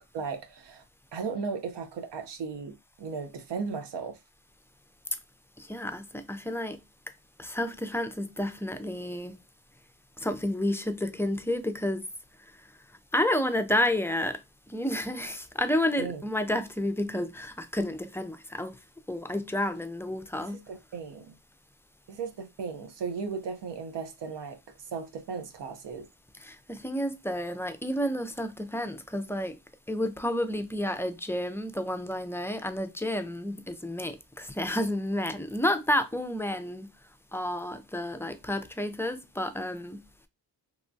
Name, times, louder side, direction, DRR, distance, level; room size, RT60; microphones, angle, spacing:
voice 1, 0.1-0.8 1.1-4.2 16.0-16.2 20.4-21.4 22.1-24.6 24.9-26.1, right 5 dB, 90° right, 0.6 m, -36 dB
voice 2, 5.6-6.8 7.4-9.3 10.2-12.1 13.1-14.4 14.7-18.8 19.1-20.7 26.4-29.6 29.9-36.9 37.3-40.0, left 1 dB, 5° left, 0.3 m, -30 dB
2.9 x 2.2 x 2.6 m
cardioid pair, 55°, 41 cm